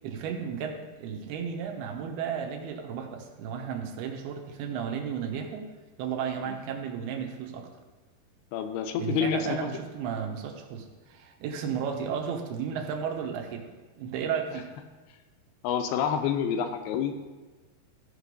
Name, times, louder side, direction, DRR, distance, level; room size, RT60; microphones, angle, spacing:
voice 1, 0.0-5.7 6.0-7.7 9.0-13.7 14.0-14.7, right 7 dB, 80° right, 3 dB, 2.9 m, -33 dB
voice 2, 8.5-9.7 15.6-17.1, left 8 dB, 85° left, 7 dB, 2.7 m, -28 dB
14.5 x 5.0 x 5.3 m, 1.3 s
omnidirectional pair, 4.6 m